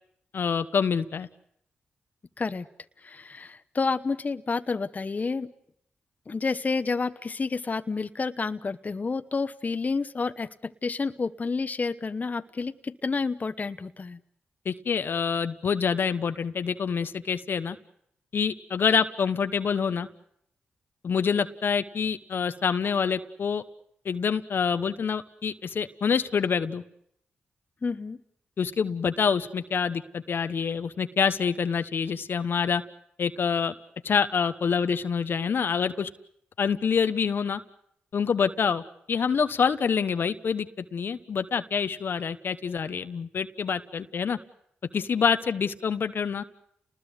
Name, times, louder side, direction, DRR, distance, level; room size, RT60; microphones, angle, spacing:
voice 1, 0.3-1.3 14.6-17.8 18.3-20.1 21.0-23.6 24.0-26.8 28.6-32.8 33.2-33.7 34.0-36.1 36.6-37.6 38.1-38.8 39.1-44.4 44.9-46.4, left 6 dB, 65° left, 10 dB, 1.1 m, -26 dB
voice 2, 3.0-5.5 6.3-14.2 27.8-28.2, left 4 dB, 45° left, 10 dB, 1.1 m, -30 dB
29.5 x 20.0 x 8.0 m, 0.72 s
supercardioid pair, 45°, 4 cm